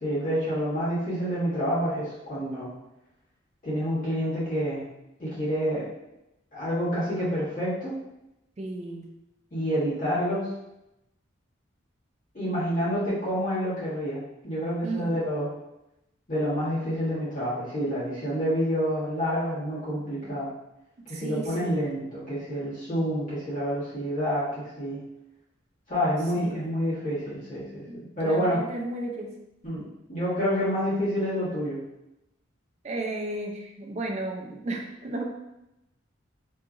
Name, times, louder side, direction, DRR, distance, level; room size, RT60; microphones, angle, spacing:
voice 1, 0.0-2.7 3.6-4.8 5.2-5.9 6.5-8.0 9.5-10.5 12.3-15.5 16.3-20.5 21.1-25.0 25.9-27.8 28.2-28.6 29.6-31.8, equal, 40° left, -11 dB, 1.3 m, -28 dB
voice 2, 8.6-9.1 14.8-15.2 20.2-20.3 21.1-21.8 26.3-26.7 27.8-29.3 32.8-35.2, right 2 dB, 35° right, 1 dB, 0.4 m, -34 dB
2.8 x 2.4 x 2.4 m, 0.89 s
head